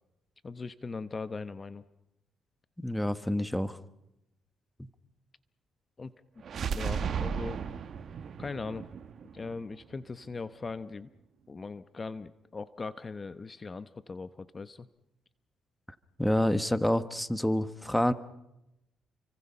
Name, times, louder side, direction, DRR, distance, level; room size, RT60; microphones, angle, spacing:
voice 1, 0.4-1.8 6.0-6.1 6.7-7.6 8.4-8.9 9.3-11.1 11.5-14.9, left 4 dB, 30° left, 13 dB, 0.9 m, -39 dB
voice 2, 2.8-3.8 4.8-4.9 16.2-18.1, left 1 dB, 5° left, 13 dB, 1.2 m, -28 dB
sound 1, 6.4-10.3, right 6 dB, 55° right, 1.8 m, -35 dB
30.0 x 24.5 x 5.6 m, 0.88 s
cardioid pair, 90°, 0 cm